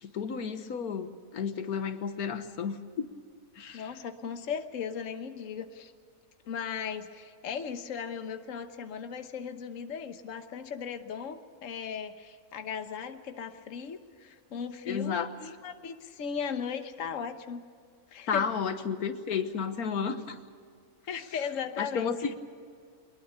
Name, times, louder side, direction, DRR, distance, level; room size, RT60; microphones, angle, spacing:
voice 1, 0.0-3.1 3.5-4.0 14.8-15.3 18.3-20.4 21.8-22.3, left 6 dB, 85° left, 9 dB, 1.7 m, -32 dB
voice 2, 3.7-5.9 6.5-17.6 18.1-18.4 21.1-22.3, left 7 dB, 60° left, 8 dB, 1.4 m, -37 dB
24.0 x 21.0 x 6.8 m, 2.2 s
omnidirectional pair, 1.5 m